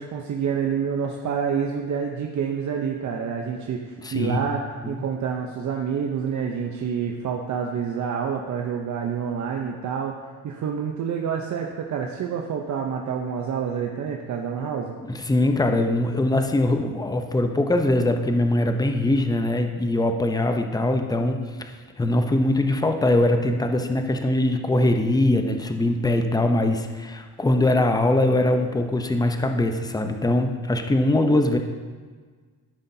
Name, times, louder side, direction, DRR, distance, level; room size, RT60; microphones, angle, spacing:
voice 1, 0.0-10.2 10.4-15.0, right 7 dB, 55° right, 2 dB, 0.8 m, -28 dB
voice 2, 4.0-4.4 4.8-4.9 15.1-21.5 22.0-31.6, left 1 dB, 10° left, 5 dB, 0.7 m, -22 dB
13.0 x 5.6 x 2.8 m, 1.5 s
cardioid pair, 90°, 36 cm